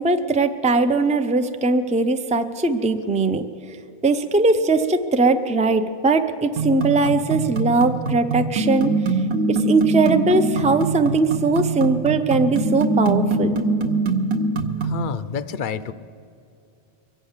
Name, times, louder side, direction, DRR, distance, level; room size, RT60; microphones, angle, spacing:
voice 1, 0.0-3.4 4.0-9.2 9.5-13.5, right 3 dB, 10° right, 8 dB, 0.4 m, -20 dB
sound 1, 6.6-15.0, right 3 dB, 70° right, 1.1 m, -23 dB
voice 2, 14.8-15.9, left 6 dB, 60° left, 14 dB, 0.7 m, -28 dB
23.0 x 8.2 x 7.3 m, 2.5 s
omnidirectional pair, 1.0 m